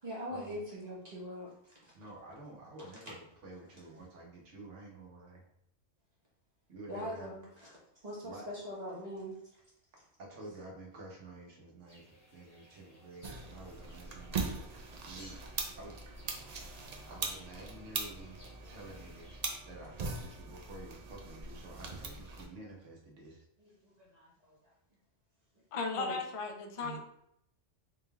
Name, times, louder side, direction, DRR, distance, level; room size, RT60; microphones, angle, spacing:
voice 1, 0.0-1.9 6.9-7.7 8.0-9.4 23.6-24.6 25.9-26.2 26.8-27.0, equal, 35° right, -6 dB, 1.1 m, -42 dB
voice 2, 1.9-5.4 6.7-7.3 8.2-8.5 10.2-16.0 17.1-18.4 18.7-23.5, right 2 dB, 70° right, -2 dB, 1.3 m, -50 dB
sound 1, 11.9-19.4, equal, 35° left, 1.0 m, -59 dB
sound 2, 13.2-22.5, right 4 dB, 55° right, 0.4 m, -41 dB
voice 3, 25.7-27.0, left 3 dB, 55° left, 3 dB, 0.3 m, -36 dB
4.0 x 3.6 x 2.3 m, 0.76 s
omnidirectional pair, 1.3 m